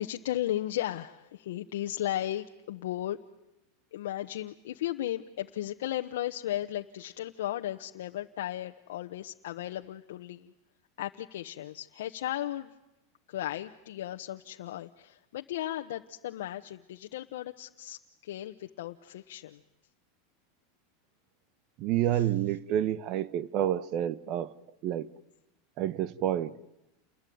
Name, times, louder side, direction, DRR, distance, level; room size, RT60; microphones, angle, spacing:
voice 1, 0.0-3.2 3.9-10.5 11.0-12.7 13.3-19.6 22.1-22.3, left 13 dB, 80° left, 1.0 m, -35 dB
voice 2, 21.8-24.5 24.8-25.1 25.8-26.6, right 11 dB, 45° right, 1.1 m, -29 dB
29.5 x 21.5 x 9.4 m
supercardioid pair, 135°, 0 cm